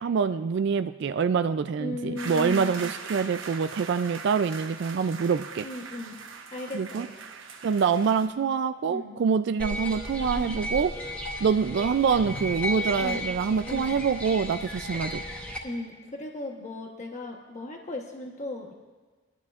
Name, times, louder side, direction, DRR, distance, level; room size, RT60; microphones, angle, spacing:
voice 1, 0.0-5.7 6.7-7.1 7.6-10.9 11.4-15.2, right 6 dB, 60° right, 11 dB, 0.3 m, -25 dB
voice 2, 1.8-2.9 5.6-6.2 6.5-7.2 8.9-9.2 10.3-10.5 13.0-13.2 13.7-14.0 15.6-18.7, left 2 dB, 40° left, 1 dB, 1.1 m, -36 dB
sound 1, 2.2-8.3, right 5 dB, 80° right, 1.0 m, -41 dB
sound 2, 9.6-15.6, equal, 5° left, 2.3 m, -34 dB
22.0 x 12.5 x 2.5 m, 1.4 s
head